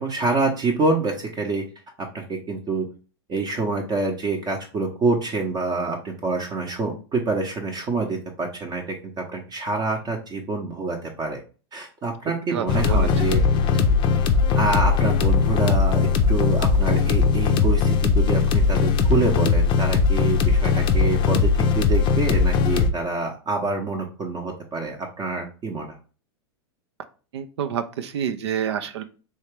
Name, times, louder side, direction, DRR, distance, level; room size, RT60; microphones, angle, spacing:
voice 1, 0.0-1.6 2.1-2.9 3.3-8.9 9.3-11.4 11.7-13.4 14.6-21.5 21.7-25.9, right 3 dB, 30° right, 1 dB, 0.7 m, -26 dB
voice 2, 12.5-13.3 27.3-29.0, right 8 dB, 75° right, 9 dB, 0.5 m, -28 dB
sound 1, 12.7-22.9, left 5 dB, 35° left, 0.5 m, -19 dB
3.3 x 2.8 x 3.2 m, 0.36 s
hypercardioid pair, 110°, 14 cm